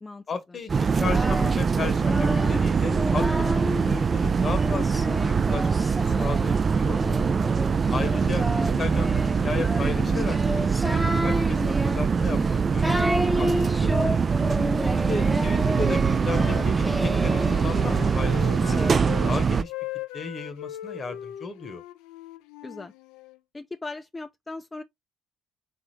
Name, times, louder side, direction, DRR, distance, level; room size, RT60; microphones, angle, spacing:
voice 1, 0.3-7.0 7.9-14.0 15.0-19.0 19.2-19.7 20.1-21.8, left 4 dB, 45° left, 1.0 m, -34 dB
sound 1, 0.7-19.6, right 5 dB, 40° right, 0.4 m, -23 dB
Singing, 0.8-3.9 4.4-18.9, equal, ahead, 0.8 m, -31 dB
voice 2, 7.8-8.3 15.1-15.5 22.6-22.9 23.5-24.8, left 3 dB, 25° left, 0.5 m, -39 dB
Wind instrument woodwind instrument, 16.0-19.3 19.6-23.4, left 12 dB, 80° left, 0.4 m, -39 dB
3.5 x 3.4 x 3.1 m
hypercardioid pair, 55°, 0 cm